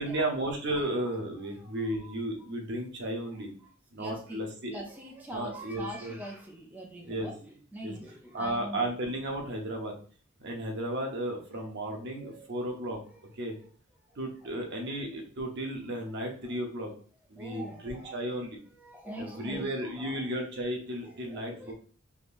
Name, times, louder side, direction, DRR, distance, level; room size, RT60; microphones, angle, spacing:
voice 1, 0.0-3.5 3.9-4.8 5.3-6.2 7.1-7.3 7.8-7.9 8.3-9.9 10.4-13.0 13.3-13.5 14.2-16.9 17.3-18.6 19.2-21.7, right 1 dB, 60° right, 0.8 m, -34 dB
voice 2, 1.4-2.2 4.0-8.9 12.1-12.5 13.1-13.2 13.5-13.7 14.4-14.6 16.4-16.5 17.4-20.3 21.0-21.7, right 1 dB, 10° right, 0.5 m, -44 dB
3.5 x 2.8 x 2.5 m
head